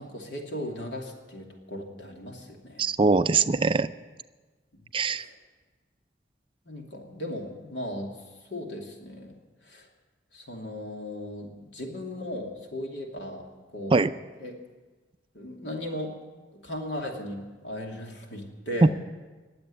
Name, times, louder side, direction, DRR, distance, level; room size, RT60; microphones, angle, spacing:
voice 1, 0.0-2.9 5.1-5.3 6.7-8.1 8.5-9.4 9.6-9.9 10.3-13.4 13.7-14.0 14.4-14.6 15.3-16.1 16.5-18.9, left 1 dB, 80° left, 1 dB, 2.7 m, -37 dB
voice 2, 2.8-3.9 4.9-5.2 13.9-14.1 18.8-18.9, right 3 dB, 30° right, 12 dB, 0.4 m, -21 dB
20.5 x 7.8 x 8.5 m, 1.3 s
head